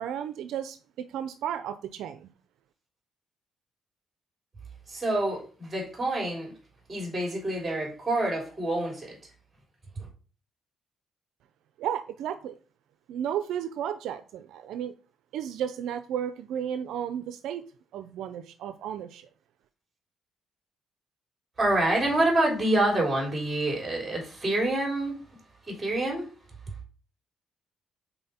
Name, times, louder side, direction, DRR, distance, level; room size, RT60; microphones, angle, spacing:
voice 1, 0.0-2.3 11.8-12.6 13.1-14.9 15.3-17.6 17.9-19.3, right 9 dB, 85° right, 0.4 m, -33 dB
voice 2, 4.9-6.5 6.9-9.2 10.0-10.1 21.6-25.1 25.7-26.3, right 1 dB, 25° right, 3.2 m, -27 dB
5.5 x 4.1 x 4.2 m
cardioid pair, 90°, 0 cm